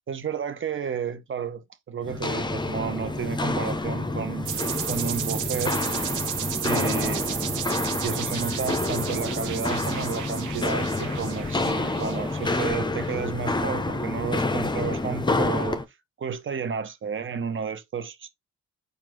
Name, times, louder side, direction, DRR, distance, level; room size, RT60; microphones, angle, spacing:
voice 1, 0.0-4.5 4.8-5.8 6.6-7.4 8.0-15.8 16.2-18.3, right 6 dB, 40° right, 1.0 m, -32 dB
Walk footsteps, 2.0-15.8, left 2 dB, 15° left, 0.7 m, -28 dB
sound 1, 4.4-13.0, right 10 dB, 80° right, 1.0 m, -34 dB
4.4 x 2.6 x 4.7 m
cardioid pair, 90°, 30 cm